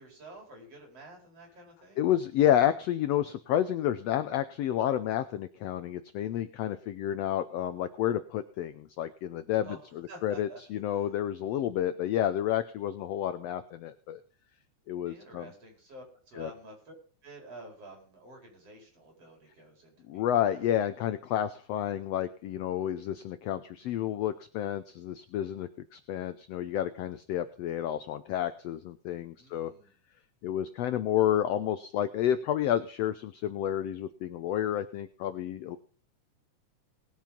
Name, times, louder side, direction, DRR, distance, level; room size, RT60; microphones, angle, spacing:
voice 1, 0.0-2.1 9.6-10.6 15.1-17.0 17.2-20.6 29.4-29.9, right 2 dB, 50° right, 1 dB, 5.7 m, -50 dB
voice 2, 2.0-14.2 14.9-15.5 16.4-16.5 20.1-29.7 30.4-35.8, left 11 dB, 80° left, 12 dB, 1.4 m, -30 dB
19.0 x 7.5 x 5.3 m, 0.42 s
omnidirectional pair, 3.6 m